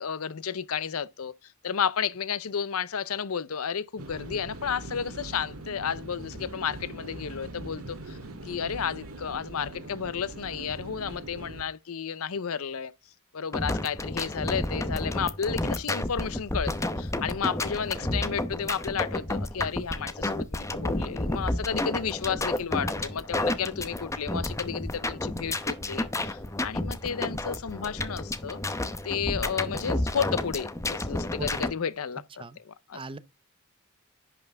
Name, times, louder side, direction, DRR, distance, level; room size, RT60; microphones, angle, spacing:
voice 1, 0.0-1.3 1.6-8.2 8.4-12.9 13.3-28.6 29.0-33.0, left 7 dB, 75° left, 0.6 m, -32 dB
sound 1, 4.0-11.6, right 2 dB, 80° right, 2.0 m, -42 dB
sound 2, 13.5-31.7, left 1 dB, 15° left, 0.7 m, -31 dB
voice 2, 18.0-18.3 31.4-31.5 32.4-32.6 32.9-33.2, right 2 dB, 25° right, 0.6 m, -39 dB
11.0 x 5.8 x 3.5 m
head